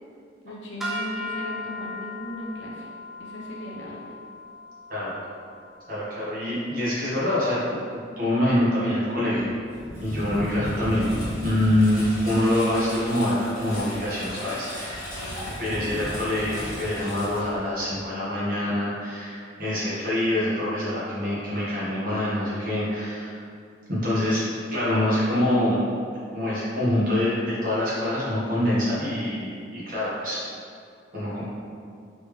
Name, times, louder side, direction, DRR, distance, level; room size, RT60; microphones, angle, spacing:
voice 1, 0.4-2.9 3.2-4.0 15.1-16.0, equal, 80° left, -3 dB, 0.9 m, -37 dB
sound 1, 0.8-7.2, left 2 dB, ahead, 0.4 m, -38 dB
voice 2, 5.9-7.8 8.2-9.5 10.0-11.1 11.4-15.3 15.6-23.4 23.9-24.4 24.7-25.8 26.3-30.4 31.1-31.4, left 1 dB, 45° right, -8 dB, 1.3 m, -25 dB
Engine, 9.4-18.1, equal, 50° left, 1.5 m, -35 dB
4.3 x 3.3 x 3.2 m, 2.3 s
head